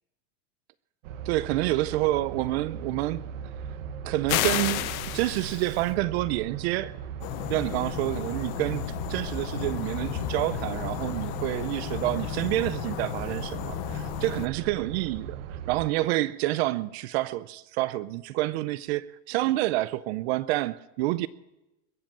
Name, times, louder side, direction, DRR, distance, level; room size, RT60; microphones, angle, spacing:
sound 1, 1.0-15.8, right 7 dB, 70° right, 1.2 m, -39 dB
voice 1, 1.2-3.2 4.0-7.0 7.5-21.3, right 17 dB, 50° right, 0.5 m, -28 dB
sound 2, 4.3-5.9, left 14 dB, 90° left, 1.1 m, -29 dB
sound 3, 7.2-14.5, left 15 dB, 45° left, 0.6 m, -34 dB
21.5 x 7.8 x 7.5 m
supercardioid pair, 170°, 40 cm